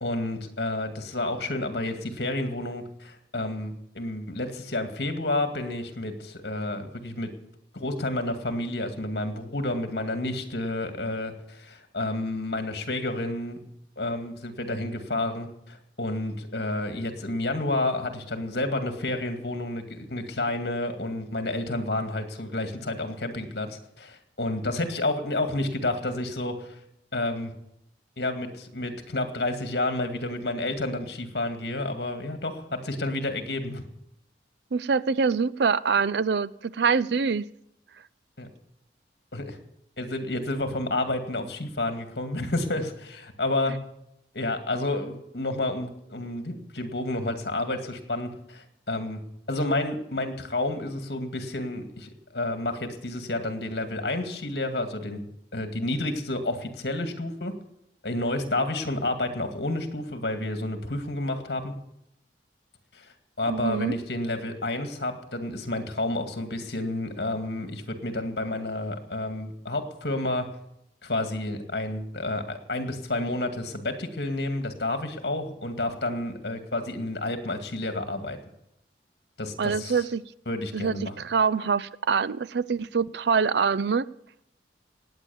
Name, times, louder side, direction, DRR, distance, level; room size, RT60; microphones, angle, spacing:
voice 1, 0.0-7.3 7.7-13.6 14.0-26.8 27.1-27.5 28.2-33.8 38.4-38.5 39.3-39.6 40.0-43.8 44.3-49.2 49.5-55.2 55.5-57.5 58.0-61.7 62.9-63.1 63.4-70.5 71.0-78.4 79.4-80.0 80.5-81.1, left 2 dB, 60° left, 7 dB, 2.1 m, -30 dB
voice 2, 34.7-37.5 63.5-63.9 79.6-80.2 80.7-84.1, right 5 dB, 65° right, 19 dB, 0.5 m, -25 dB
18.5 x 8.9 x 7.1 m, 0.78 s
head